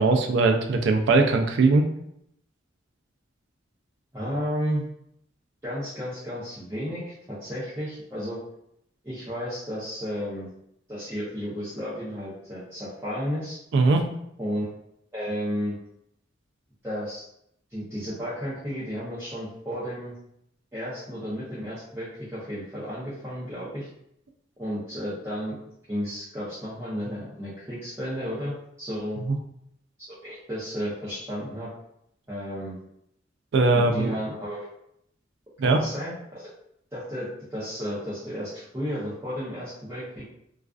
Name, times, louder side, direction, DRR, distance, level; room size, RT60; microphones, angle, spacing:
voice 1, 0.0-1.8 13.7-14.0 29.3-29.4 33.5-34.1 35.6-35.8, right 3 dB, 60° right, 4 dB, 0.3 m, -20 dB
voice 2, 4.1-4.8 5.6-8.4 9.0-10.5 10.9-13.6 14.4-14.7 15.1-15.8 16.8-17.2 17.7-20.1 20.7-23.9 24.6-25.5 25.9-29.2 30.1-31.7 32.3-32.8 33.7-34.7 35.6-36.5 36.9-40.3, equal, 15° right, -12 dB, 0.6 m, -33 dB
2.4 x 2.3 x 2.3 m, 0.75 s
head